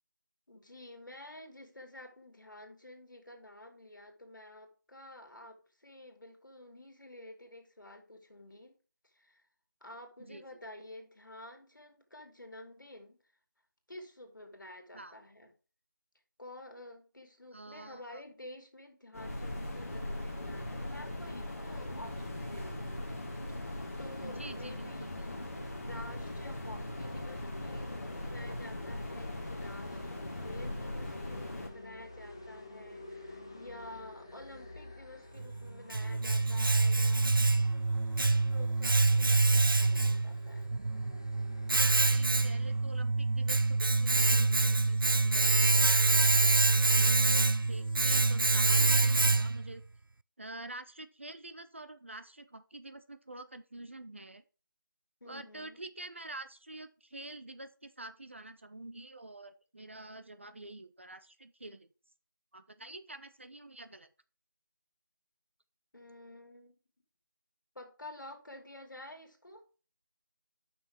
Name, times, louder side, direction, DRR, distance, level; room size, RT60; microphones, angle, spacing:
voice 1, 0.5-8.7 9.0-9.4 9.8-13.2 13.9-15.5 16.4-23.1 23.5-23.6 24.0-25.1 25.8-37.3 38.0-40.7 55.2-55.8 65.9-66.8 67.7-69.7, left 1 dB, 65° left, 5 dB, 2.6 m, -50 dB
voice 2, 10.3-10.6 14.9-15.2 17.5-18.2 24.2-25.1 42.0-49.8 50.4-54.4 55.2-61.9 62.5-64.1, right 2 dB, 35° right, 11 dB, 0.5 m, -47 dB
sound 1, 19.1-31.7, left 1 dB, 45° left, 1.6 m, -40 dB
sound 2, 26.9-42.8, left 2 dB, 15° left, 0.5 m, -51 dB
Domestic sounds home sounds, 35.4-49.7, right 3 dB, 85° right, 0.4 m, -26 dB
7.0 x 6.0 x 4.6 m, 0.36 s
figure-of-eight pair, 165°, 11 cm